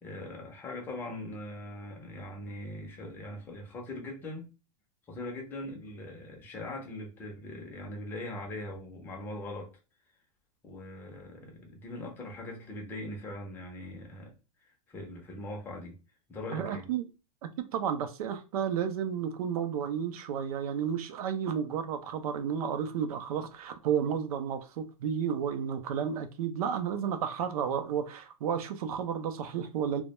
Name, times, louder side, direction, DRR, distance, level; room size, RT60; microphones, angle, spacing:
voice 1, 0.0-4.5 5.1-9.7 10.6-14.3 14.9-16.0 16.3-16.9, left 1 dB, 10° left, 0.4 m, -41 dB
voice 2, 16.5-17.0 17.7-30.0, right 8 dB, 85° right, 0.5 m, -32 dB
2.1 x 2.1 x 2.9 m
supercardioid pair, 170°, 19 cm